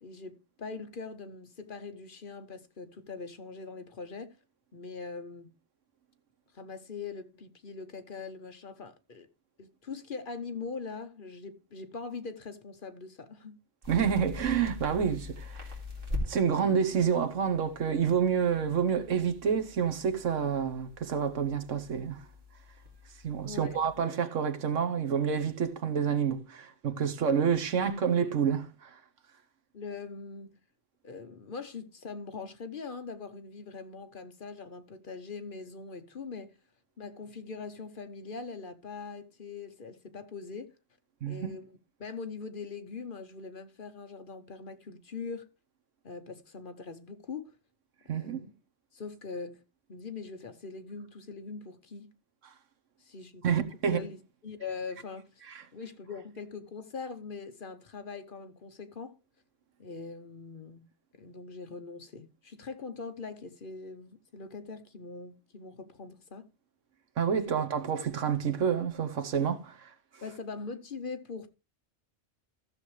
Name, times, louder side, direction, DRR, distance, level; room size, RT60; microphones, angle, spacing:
voice 1, 0.0-4.4 4.7-5.5 6.5-9.3 9.6-13.6 23.5-23.8 29.7-30.5 31.0-36.6 37.0-40.7 41.3-41.7 42.0-45.5 46.0-47.6 48.0-48.5 48.9-49.6 49.9-52.1 53.0-55.5 55.7-59.2 59.8-60.9 61.2-66.5 67.5-67.6 70.2-71.5, left 4 dB, 45° left, 1.0 m, -42 dB
sound 1, 13.8-24.0, left 2 dB, 45° right, 2.6 m, -43 dB
voice 2, 13.9-15.6 16.3-22.2 23.2-28.9 41.2-41.5 48.1-48.4 53.4-54.0 67.2-69.9, right 7 dB, 85° right, 1.4 m, -28 dB
14.0 x 7.0 x 3.2 m
omnidirectional pair, 1.3 m